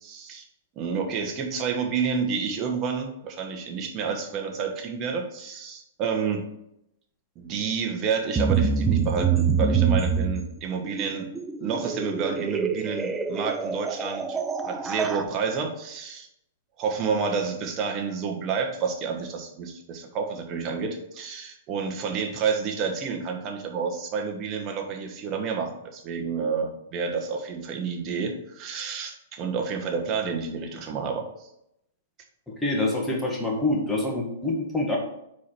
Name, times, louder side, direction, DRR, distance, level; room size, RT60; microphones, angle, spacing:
voice 1, 0.0-0.4 0.8-6.4 7.4-11.3 11.6-16.3 16.8-31.5, right 5 dB, 30° right, 2 dB, 1.2 m, -29 dB
sound 1, 8.3-15.2, right 6 dB, 15° right, 0.5 m, -26 dB
voice 2, 32.6-35.0, left 2 dB, 5° left, -1 dB, 1.5 m, -26 dB
4.8 x 4.4 x 6.0 m, 0.81 s
hypercardioid pair, 140°, 0 cm